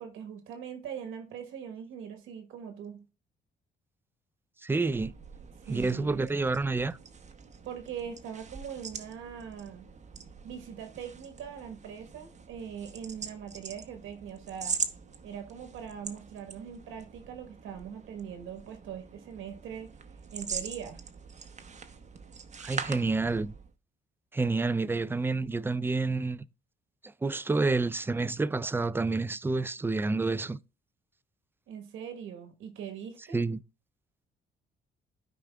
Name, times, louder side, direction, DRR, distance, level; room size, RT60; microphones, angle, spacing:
voice 1, 0.0-3.0 5.7-6.3 7.6-9.9 10.4-14.8 15.2-19.9 20.3-21.0 31.7-33.4, right 8 dB, 90° right, 1.3 m, -41 dB
voice 2, 4.6-5.1 5.7-7.0 22.6-23.5 24.3-26.4 27.2-30.6 33.3-33.6, right 3 dB, 10° right, 0.3 m, -29 dB
sound 1, 4.8-23.7, right 6 dB, 35° right, 0.9 m, -42 dB
13.0 x 5.0 x 2.3 m
cardioid pair, 90°, 20 cm